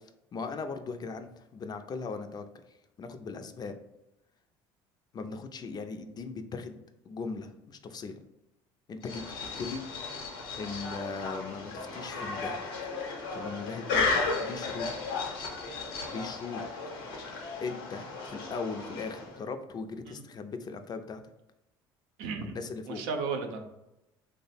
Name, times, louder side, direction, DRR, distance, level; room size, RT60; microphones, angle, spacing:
voice 1, 0.3-2.4 3.0-3.8 5.1-6.8 7.1-8.2 8.9-9.9 10.6-12.6 13.3-14.9 16.1-16.6 17.6-21.2 22.4-23.0, left 4 dB, 35° left, 8 dB, 0.4 m, -38 dB
sound 1, 9.0-19.4, left 4 dB, 90° left, 0.7 m, -34 dB
voice 2, 22.2-22.6 22.9-23.7, right 4 dB, 80° right, 4 dB, 0.5 m, -34 dB
3.2 x 2.0 x 4.1 m, 0.91 s
supercardioid pair, 85°, 11 cm